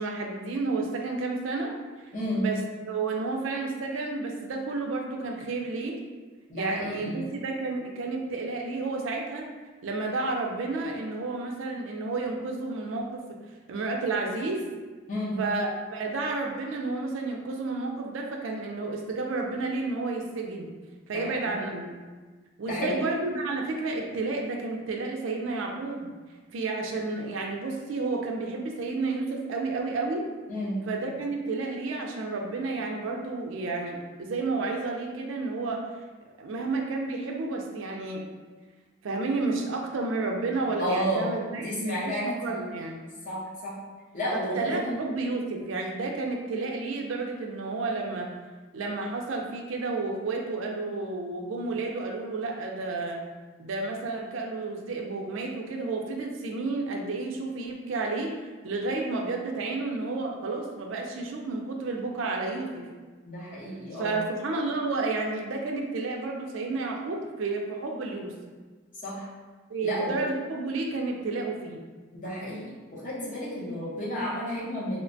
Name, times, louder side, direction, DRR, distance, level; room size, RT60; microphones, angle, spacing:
voice 1, 0.0-1.7 2.3-2.6 2.9-6.0 6.5-9.5 9.8-13.4 13.7-14.7 15.4-20.7 21.1-21.9 22.6-26.1 26.5-30.3 30.9-35.9 36.4-38.2 39.0-43.0 44.3-48.3 48.7-53.2 53.6-62.9 63.9-68.3 69.7-71.8, right 3 dB, 85° right, 1 dB, 0.4 m, -31 dB
voice 2, 2.1-2.5 6.5-7.3 15.1-15.4 21.1-21.6 22.7-23.0 30.5-30.8 40.8-42.7 43.2-43.8 44.1-45.0 63.2-64.2 69.0-69.3 69.8-70.2 72.1-75.0, equal, 40° left, -7 dB, 0.8 m, -32 dB
3.1 x 2.1 x 2.5 m, 1.4 s
head